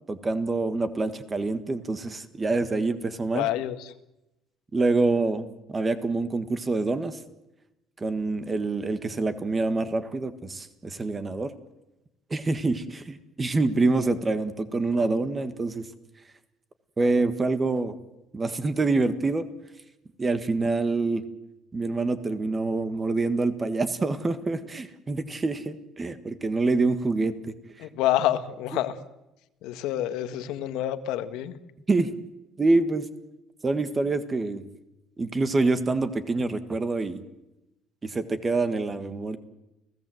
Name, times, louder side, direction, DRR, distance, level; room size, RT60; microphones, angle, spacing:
voice 1, 0.1-3.5 4.7-7.2 8.0-11.5 12.3-15.8 17.0-18.0 18.3-19.4 20.2-21.2 21.7-27.3 31.9-32.1 32.6-33.0 33.6-34.6 35.2-37.2 38.0-39.4, right 3 dB, 15° right, 10 dB, 1.6 m, -26 dB
voice 2, 3.3-3.9 27.8-29.0 29.6-31.6, left 12 dB, 90° left, 10 dB, 1.7 m, -27 dB
30.0 x 17.0 x 7.8 m, 0.94 s
cardioid pair, 170°, 0 cm